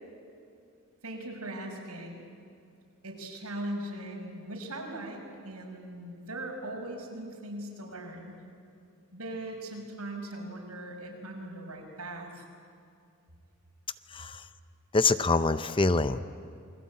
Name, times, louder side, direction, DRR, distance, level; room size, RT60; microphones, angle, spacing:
voice 1, 1.0-2.2 3.0-8.4 9.1-12.4, right 1 dB, 85° right, 0 dB, 6.1 m, -39 dB
voice 2, 14.9-16.2, left 3 dB, 25° left, 12 dB, 0.6 m, -25 dB
28.5 x 23.0 x 8.6 m, 2.4 s
head